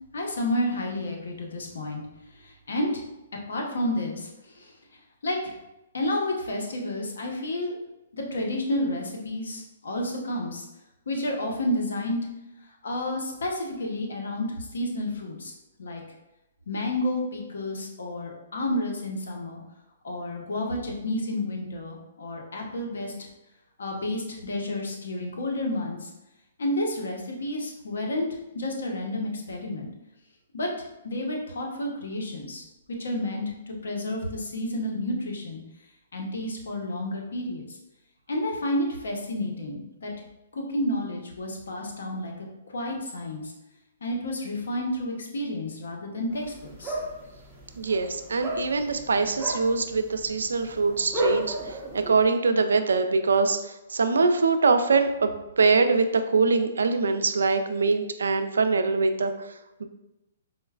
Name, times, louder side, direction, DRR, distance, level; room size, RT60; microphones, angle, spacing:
voice 1, 0.1-2.0 2.3-3.0 3.5-4.7 5.2-5.5 5.9-7.8 8.1-10.7 11.1-12.2 12.8-15.5 15.8-16.0 16.7-19.6 20.0-23.1 23.8-26.1 26.6-28.3 28.5-29.9 30.5-30.7 31.0-32.6 33.0-35.6 36.1-37.8 38.3-40.1 40.5-42.3 42.7-43.5 44.0-47.0, left 1 dB, 80° left, 0 dB, 0.7 m, -30 dB
sound 1, 46.3-52.3, right 1 dB, 10° right, 0.7 m, -34 dB
voice 2, 47.8-51.5 51.9-53.6 53.9-55.3 55.6-56.1 56.3-59.3, right 4 dB, 90° right, 8 dB, 0.3 m, -23 dB
4.4 x 2.1 x 2.3 m, 0.96 s
hypercardioid pair, 145°, 0 cm